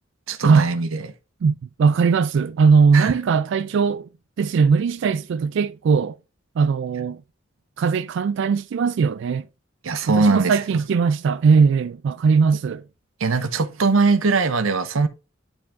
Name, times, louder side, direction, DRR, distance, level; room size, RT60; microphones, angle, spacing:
voice 1, 0.3-1.0 2.9-3.1 9.8-10.6 13.2-15.1, right 4 dB, 80° right, 0.7 m, -20 dB
voice 2, 1.4-4.1 4.4-6.2 6.6-7.2 7.8-9.5 10.1-12.8, right 5 dB, 65° right, 0.3 m, -19 dB
9.6 x 4.4 x 2.5 m
head